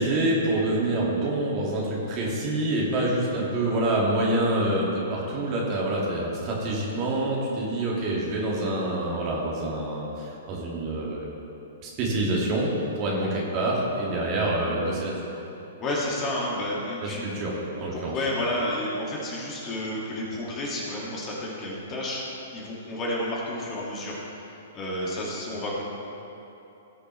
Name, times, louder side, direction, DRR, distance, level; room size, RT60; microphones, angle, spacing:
voice 1, 0.0-11.3 11.8-12.7 13.0-15.3 17.0-18.1, right 1 dB, 35° right, -4 dB, 2.3 m, -26 dB
voice 2, 13.0-13.3 15.8-17.3 17.9-22.2 22.5-24.1 24.7-25.8, left 1 dB, 25° left, -4 dB, 2.2 m, -31 dB
17.5 x 6.6 x 3.3 m, 2.9 s
figure-of-eight pair, 110°, 0 cm